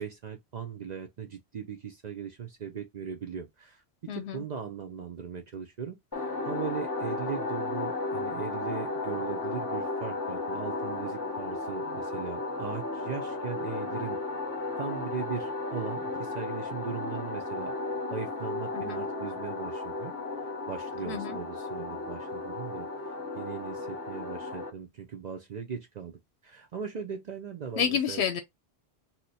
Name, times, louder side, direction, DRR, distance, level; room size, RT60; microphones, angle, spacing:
voice 1, 0.0-14.2 14.8-17.7 18.1-20.1 20.7-22.9 23.3-28.3, right 6 dB, 55° right, 0.5 m, -38 dB
voice 2, 4.1-4.4 18.7-19.0 21.0-21.4 27.8-28.4, left 7 dB, 85° left, 0.8 m, -30 dB
sound 1, 6.1-24.7, left 3 dB, 20° left, 0.9 m, -34 dB
2.8 x 2.1 x 4.0 m
omnidirectional pair, 1.1 m